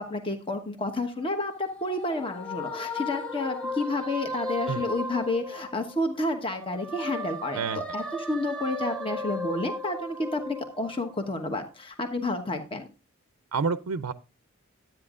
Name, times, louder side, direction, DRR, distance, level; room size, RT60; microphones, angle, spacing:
voice 1, 0.0-12.9, left 2 dB, 25° left, 5 dB, 1.1 m, -30 dB
sound 1, 1.2-6.2 6.5-11.3, left 1 dB, 5° left, 1.5 m, -36 dB
voice 2, 13.5-14.1, right 5 dB, 85° right, 11 dB, 0.5 m, -28 dB
12.0 x 9.0 x 2.5 m, 0.30 s
head